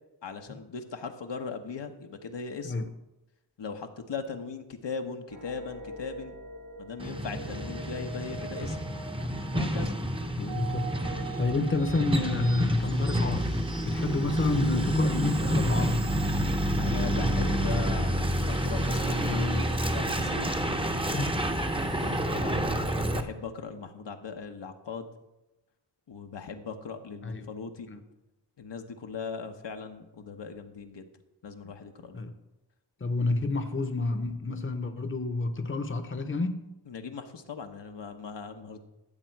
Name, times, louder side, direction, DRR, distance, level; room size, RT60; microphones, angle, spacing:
voice 1, 0.2-2.7 3.6-6.3 6.8-8.8 9.5-9.9 16.8-19.6 19.9-20.5 22.0-25.1 26.1-27.9 28.6-31.0 31.4-32.2 36.9-38.8, left 5 dB, 75° left, 5 dB, 1.0 m, -39 dB
sound 1, 5.3-22.2, right 3 dB, 90° right, 3.5 m, -45 dB
Truck, 7.0-23.2, equal, 10° right, 0.8 m, -29 dB
voice 2, 10.3-10.9 11.4-13.5 13.9-16.1 21.1-21.4 27.2-27.5 27.9-28.0 32.1-32.3 33.0-36.6, left 3 dB, 30° left, 9 dB, 0.8 m, -29 dB
13.5 x 7.4 x 4.6 m, 0.98 s
wide cardioid pair, 105°, 43 cm